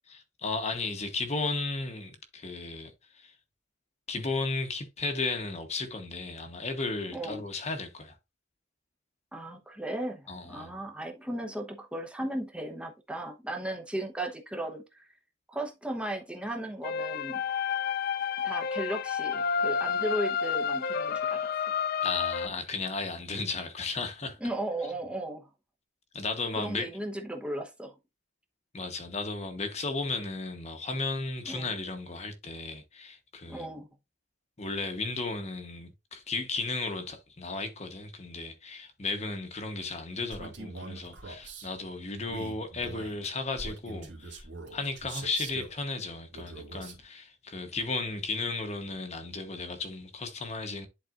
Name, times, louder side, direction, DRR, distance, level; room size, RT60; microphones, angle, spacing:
voice 1, 0.1-3.4 4.1-8.2 10.3-10.7 22.0-24.4 26.1-26.9 28.7-33.7 34.6-50.9, left 3 dB, 35° left, 1.0 m, -34 dB
voice 2, 7.1-7.4 9.3-15.0 15.5-17.4 18.4-21.5 24.4-25.5 26.6-27.9 31.5-31.7 33.5-33.9, right 1 dB, 5° right, 0.9 m, -36 dB
sound 1, 16.8-22.5, left 6 dB, 50° left, 0.3 m, -30 dB
Male speech man speaking, 40.3-41.7 42.3-45.8 46.3-47.0, right 3 dB, 70° right, 2.1 m, -43 dB
10.5 x 4.1 x 2.5 m
head